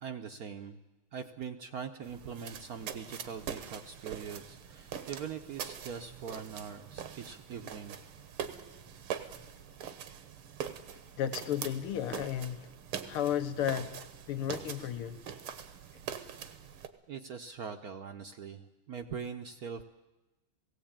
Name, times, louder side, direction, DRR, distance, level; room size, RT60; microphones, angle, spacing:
voice 1, 0.0-0.8 1.1-8.0 17.1-19.8, right 6 dB, 60° right, 7 dB, 1.0 m, -42 dB
sound 1, 2.0-16.9, right 8 dB, 80° right, 2.1 m, -43 dB
voice 2, 11.2-12.7 13.0-14.0 14.3-15.2, left 10 dB, 85° left, 9 dB, 2.0 m, -33 dB
18.0 x 17.0 x 8.8 m, 1.1 s
omnidirectional pair, 2.4 m